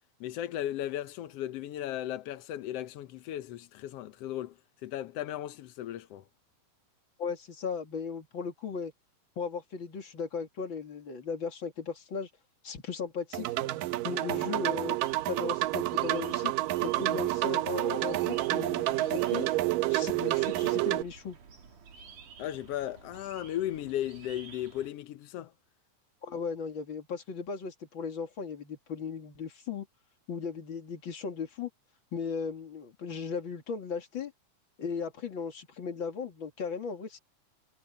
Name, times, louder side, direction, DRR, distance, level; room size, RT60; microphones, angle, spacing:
voice 1, 0.2-6.2 22.4-25.5, left 12 dB, 85° left, 1.3 m, -36 dB
voice 2, 7.2-8.9 9.4-12.3 12.6-13.5 14.0-15.0 15.3-16.5 16.8-19.5 19.9-21.4 26.2-29.9 30.3-31.7 32.1-34.3 34.8-37.2, left 5 dB, 40° left, 2.8 m, -36 dB
sound 1, 13.3-21.0, right 17 dB, 80° right, 2.5 m, -29 dB
sound 2, 15.0-24.9, right 6 dB, 65° right, 4.5 m, -52 dB
omnidirectional pair, 3.9 m